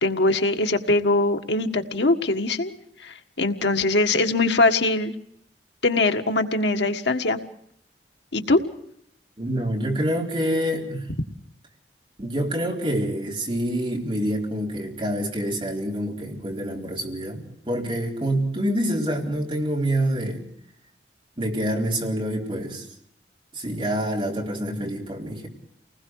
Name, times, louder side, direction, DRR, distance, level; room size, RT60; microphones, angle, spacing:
voice 1, 0.0-2.7 3.0-5.1 5.8-7.4 8.3-8.6, left 2 dB, 85° left, 6 dB, 1.7 m, -22 dB
voice 2, 9.4-11.1 12.2-20.4 21.4-22.8 23.5-25.5, equal, 30° right, -1 dB, 4.4 m, -26 dB
29.5 x 20.5 x 4.8 m, 0.66 s
head